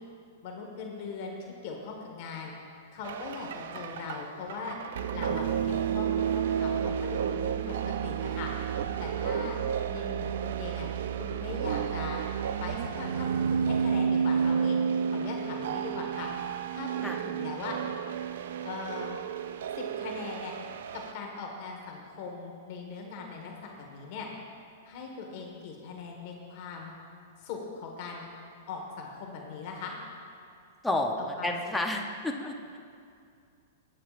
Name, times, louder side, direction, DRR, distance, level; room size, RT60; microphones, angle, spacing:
voice 1, 0.4-1.3 1.6-2.5 2.9-4.8 5.1-8.5 9.0-9.6 9.9-10.9 11.2-12.2 12.6-14.8 15.1-16.3 16.7-16.9 17.2-17.8 18.6-19.2 19.7-20.5 20.9-24.3 24.8-26.9 27.4-28.2 28.7-29.9 31.4-31.7, left 5 dB, 50° left, 0 dB, 1.6 m, -40 dB
sound 1, 3.0-21.1, right 7 dB, 70° right, 0.4 m, -31 dB
voice 2, 30.8-32.8, left 1 dB, 5° left, 1 dB, 0.7 m, -31 dB
17.5 x 8.9 x 2.5 m, 2.4 s
hypercardioid pair, 145°, 0 cm